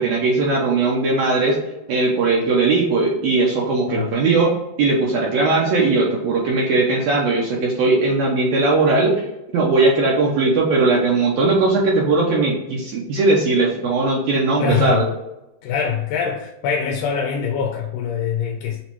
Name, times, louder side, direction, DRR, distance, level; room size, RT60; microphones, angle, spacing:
voice 1, 0.0-1.6 1.9-4.5 4.8-9.2 9.5-15.1, right 3 dB, 75° right, 1.6 m, -18 dB
voice 2, 14.6-15.1 15.6-18.8, left 6 dB, 80° left, 1.9 m, -23 dB
6.8 x 2.3 x 2.9 m
omnidirectional pair, 3.8 m